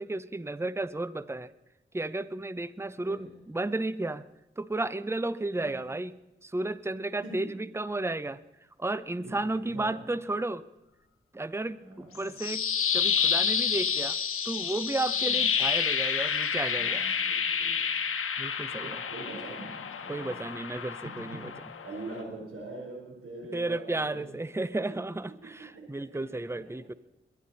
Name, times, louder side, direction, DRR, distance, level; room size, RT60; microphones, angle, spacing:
voice 1, 0.0-1.5 1.9-4.2 4.6-6.1 6.4-8.4 8.8-10.6 11.3-12.6 12.9-14.2 14.4-17.0 18.4-19.0 20.1-21.5 23.5-26.9, right 2 dB, 10° right, 16 dB, 0.7 m, -33 dB
voice 2, 2.9-3.6 5.6-5.9 7.2-7.4 9.2-10.0 11.8-12.4 15.1-15.5 16.7-17.9 18.7-20.6 21.0-21.6 21.8-24.3 24.9-25.0 25.4-26.4 26.7-26.8, right 2 dB, 85° right, -1 dB, 4.1 m, -44 dB
sound 1, 12.1-22.2, left 7 dB, 85° left, 1.1 m, -29 dB
22.5 x 11.5 x 4.1 m, 0.96 s
cardioid pair, 40°, 21 cm